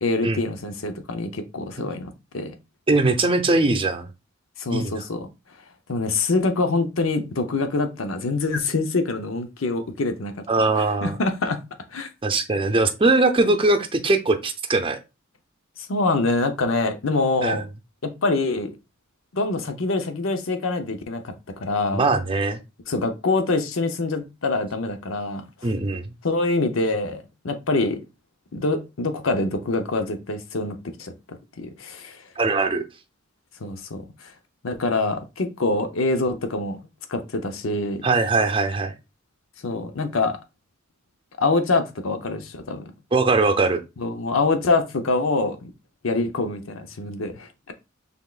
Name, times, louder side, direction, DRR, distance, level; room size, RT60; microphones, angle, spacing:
voice 1, 0.0-2.5 4.6-5.2 5.9-10.3 10.7-11.6 11.9-12.1 15.8-17.6 18.0-18.7 19.3-21.3 21.6-22.0 22.9-25.4 26.2-28.0 28.5-32.2 33.6-34.3 34.6-36.8 37.1-38.0 39.6-40.4 41.4-42.8 44.0-45.7 46.0-47.7, left 3 dB, 85° left, 0.7 m, -25 dB
voice 2, 2.9-4.1 4.7-5.0 10.5-11.1 12.2-15.0 17.4-17.6 21.9-22.6 25.6-26.1 32.4-32.8 38.0-38.9 43.1-43.8, right 3 dB, 25° right, 0.6 m, -21 dB
5.9 x 3.6 x 2.4 m
head